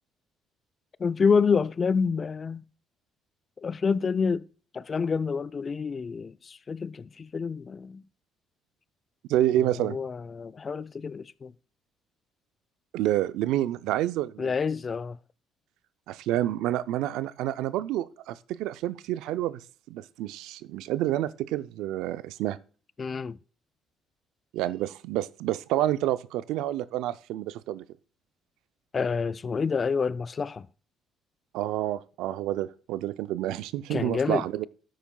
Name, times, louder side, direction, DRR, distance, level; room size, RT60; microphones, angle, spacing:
voice 1, 1.0-2.6 3.6-4.5 4.7-8.0 9.8-11.5 14.4-15.2 23.0-23.4 28.9-30.7 33.9-34.7, left 5 dB, 40° left, 0.4 m, -28 dB
voice 2, 9.3-10.0 12.9-14.6 16.1-19.6 19.9-22.6 24.5-27.8 31.5-34.7, right 13 dB, 80° right, 0.4 m, -28 dB
12.5 x 9.1 x 2.3 m
supercardioid pair, 70°, 0 cm